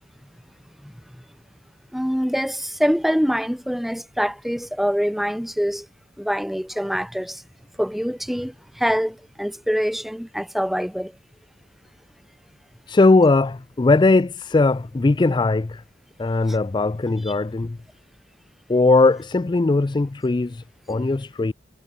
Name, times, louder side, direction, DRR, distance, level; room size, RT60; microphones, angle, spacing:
voice 1, 1.9-5.9 6.2-7.4 7.8-11.1 16.5-16.6 20.9-21.1, equal, ahead, 1.0 m, -25 dB
voice 2, 12.9-15.8 16.2-17.8 18.7-21.5, left 3 dB, 25° left, 0.4 m, -19 dB
head